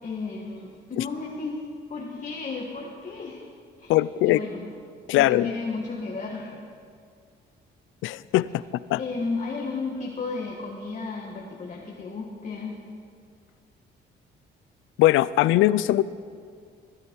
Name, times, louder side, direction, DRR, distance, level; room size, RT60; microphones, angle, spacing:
voice 1, 0.0-3.4 3.8-3.9 4.2-4.7 5.1-6.6 9.0-12.8, left 4 dB, 40° left, -1 dB, 1.6 m, -33 dB
voice 2, 3.9-4.4 5.1-5.5 8.0-8.6 8.9-9.0 15.0-16.0, left 15 dB, 90° left, 18 dB, 0.4 m, -20 dB
16.5 x 12.5 x 4.5 m, 2.2 s
cardioid pair, 90°, 20 cm